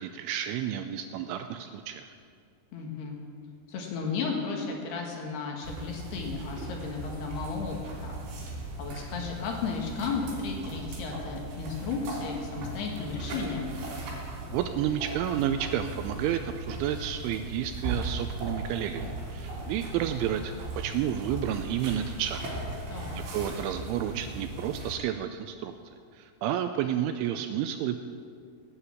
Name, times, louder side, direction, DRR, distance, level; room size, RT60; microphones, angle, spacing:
voice 1, 0.0-2.1 14.5-22.4 23.3-28.0, right 10 dB, 85° right, 8 dB, 2.8 m, -31 dB
voice 2, 2.7-3.2 3.7-7.8 8.0-13.7 22.9-23.2, left 5 dB, 60° left, 0 dB, 3.3 m, -34 dB
sound 1, 5.6-24.9, right 2 dB, 65° right, 5.4 m, -38 dB
17.5 x 9.8 x 8.5 m, 2.2 s
omnidirectional pair, 5.9 m